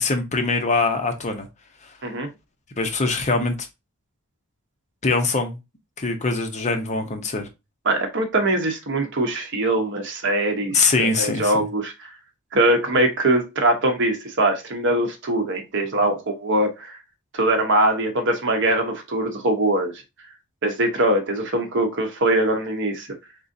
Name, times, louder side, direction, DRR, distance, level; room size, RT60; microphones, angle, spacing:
voice 1, 0.0-1.5 2.8-3.5 5.0-5.6 6.0-7.5 10.7-11.7, left 3 dB, 35° left, 0.8 m, -22 dB
voice 2, 7.8-12.1 12.5-17.0 17.3-19.9 20.6-23.1, right 1 dB, 60° right, 0.9 m, -22 dB
3.9 x 3.7 x 2.6 m
head